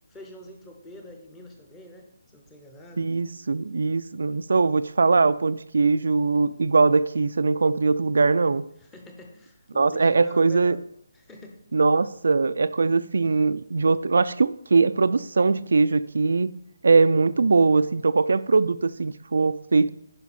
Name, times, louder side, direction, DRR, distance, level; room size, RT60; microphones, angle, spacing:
voice 1, 0.1-3.1 8.8-10.9 11.1-11.6, left 1 dB, 5° left, 3 dB, 0.6 m, -45 dB
voice 2, 3.0-8.6 9.7-10.8 11.7-16.5 16.8-19.9, right 4 dB, 65° right, 13 dB, 0.3 m, -21 dB
10.5 x 5.1 x 4.1 m, 0.71 s
hypercardioid pair, 180°, 0 cm